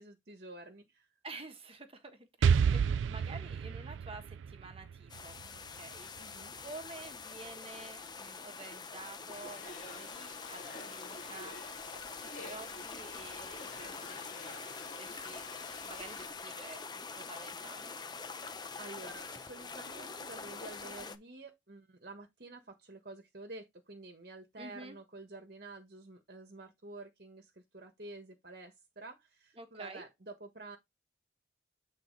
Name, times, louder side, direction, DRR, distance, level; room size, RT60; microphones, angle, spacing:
voice 1, 0.0-1.1 6.2-6.6 18.8-30.8, right 2 dB, 50° right, 1.4 m, -49 dB
voice 2, 1.2-11.8 12.2-15.4 15.8-18.0 24.6-25.0 29.6-30.0, right 3 dB, 30° right, 1.5 m, -50 dB
Explosion, 2.4-6.2, right 6 dB, 80° right, 0.3 m, -30 dB
sound 1, 5.1-21.2, left 4 dB, 20° left, 0.7 m, -45 dB
Domestic sounds home sounds, 9.3-16.3, left 3 dB, 40° left, 2.0 m, -49 dB
8.6 x 4.1 x 4.0 m
head